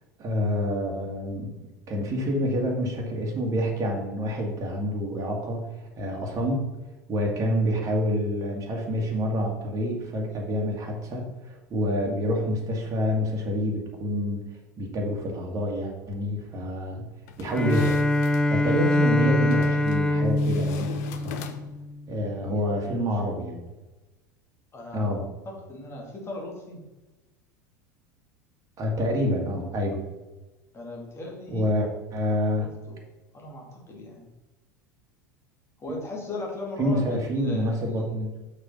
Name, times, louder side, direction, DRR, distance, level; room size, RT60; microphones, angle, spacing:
voice 1, 0.2-1.5 1.9-6.7 7.1-14.4 14.8-17.1 17.4-18.0 18.5-21.4 22.1-23.6 24.9-25.2 28.8-30.0 31.5-32.7 36.8-38.4, equal, 35° right, 0 dB, 2.0 m, -27 dB
sound 1, 17.3-18.5 19.5-20.0 20.4-21.9, left 7 dB, 55° left, 0.7 m, -41 dB
Bowed string instrument, 17.5-21.9, left 1 dB, 5° left, 0.6 m, -24 dB
voice 2, 24.7-25.1 25.5-26.8 30.7-31.7 32.6-33.0 33.3-34.3 35.8-38.2, left 2 dB, 25° left, -1 dB, 2.5 m, -38 dB
6.5 x 5.0 x 5.5 m, 1.1 s
figure-of-eight pair, 75°, 10 cm